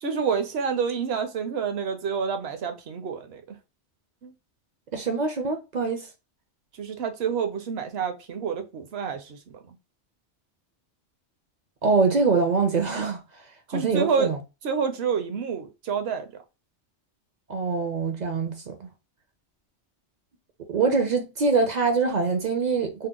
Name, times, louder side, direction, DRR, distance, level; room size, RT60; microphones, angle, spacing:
voice 1, 0.0-3.4 4.2-4.3 6.8-9.8 13.7-14.3 14.6-16.3, right 6 dB, 70° right, 0.9 m, -28 dB
voice 2, 4.9-6.1 11.8-13.2 13.7-14.4 17.5-18.9 20.7-23.1, right 4 dB, 55° right, 0.5 m, -24 dB
2.8 x 2.1 x 3.6 m
omnidirectional pair, 1.2 m